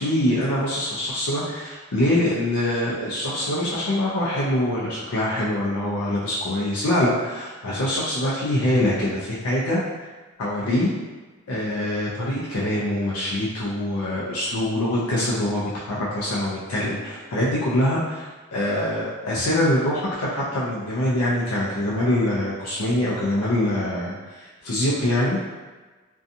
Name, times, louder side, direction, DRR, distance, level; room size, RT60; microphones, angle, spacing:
voice 1, 0.0-10.1 10.4-10.9 11.5-25.4, left 1 dB, 85° left, -7 dB, 0.5 m, -24 dB
2.6 x 2.3 x 2.6 m, 1.3 s
head